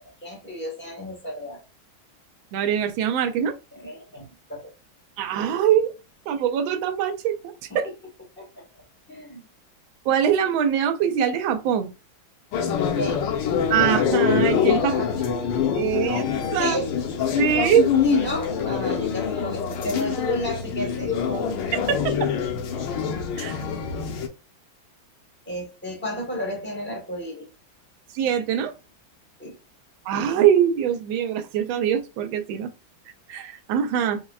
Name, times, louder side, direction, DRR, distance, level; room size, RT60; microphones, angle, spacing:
voice 1, 0.0-1.6 3.7-4.2 4.5-4.7 7.7-7.9 8.4-8.6 9.1-9.5 12.7-13.2 14.8-15.3 16.6-16.9 18.0-21.6 25.5-27.5 29.4-29.6, left 1 dB, 10° left, 0.6 m, -32 dB
voice 2, 2.5-3.5 5.2-5.9 6.3-7.9 10.1-11.9 13.7-15.0 15.7-16.3 16.5-16.8 17.4-17.8 22.2-22.3 23.4-23.6 28.1-28.7 30.1-32.7 33.3-34.2, right 9 dB, 80° right, 1.4 m, -23 dB
sound 1, 12.5-24.3, left 7 dB, 75° left, 1.3 m, -25 dB
5.7 x 2.1 x 2.3 m
omnidirectional pair, 2.1 m